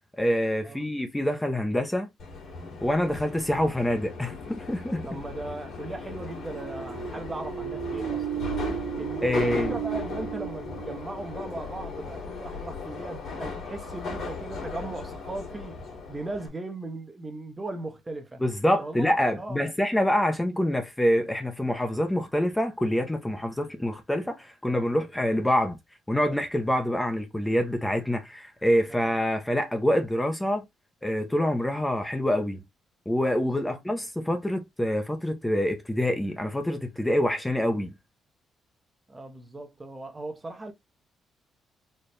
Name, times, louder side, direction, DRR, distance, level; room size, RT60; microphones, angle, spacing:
voice 1, 0.2-2.1 2.8-5.1 9.2-9.7 18.4-25.8 26.1-30.6 31.0-32.6 33.1-37.9, equal, 10° left, 0.7 m, -26 dB
Subway metro underground, 2.2-16.5, left 4 dB, 70° left, 2.3 m, -37 dB
voice 2, 5.1-8.5 9.0-15.8 16.1-18.4 18.8-19.7 28.9-29.1 33.6-33.8 39.1-40.7, right 2 dB, 20° right, 0.8 m, -38 dB
sound 1, 6.3-12.0, right 11 dB, 80° right, 0.7 m, -35 dB
4.3 x 2.3 x 3.3 m
cardioid pair, 90°, 0 cm